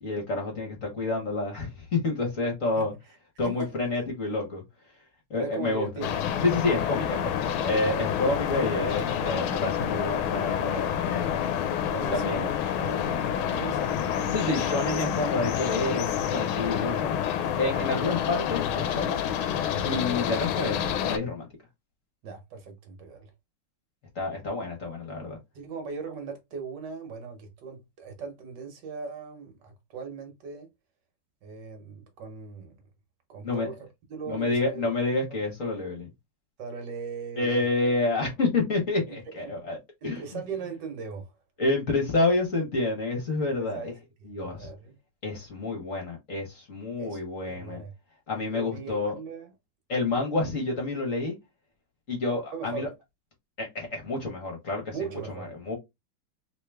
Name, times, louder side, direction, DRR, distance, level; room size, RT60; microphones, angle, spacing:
voice 1, 0.0-2.9 3.4-4.6 5.3-5.9 6.4-11.3 12.1-12.4 14.3-17.2 17.5-19.2 19.8-21.5 24.1-25.4 33.4-33.7 34.3-36.1 37.4-39.8 40.0-40.2 41.6-43.9 44.3-44.7 45.2-47.8 48.3-49.1 49.9-51.4 52.1-52.9 53.6-54.9 55.3-55.7, left 2 dB, 45° left, 1.4 m, -29 dB
voice 2, 5.3-6.1 7.7-8.1 11.9-12.5 12.7-14.7 16.9-17.1 17.8-18.2 20.2-20.3 22.2-23.3 25.5-30.7 31.4-32.8 33.3-33.8 34.1-35.2 36.6-37.6 39.3-39.6 40.0-41.3 43.6-43.9 44.2-44.9 47.0-47.9 48.3-49.5 52.5-52.9 54.9-55.5, right 5 dB, 65° right, 1.5 m, -39 dB
sound 1, 6.0-21.2, left 9 dB, 85° left, 1.4 m, -28 dB
3.3 x 2.9 x 3.4 m
omnidirectional pair, 2.2 m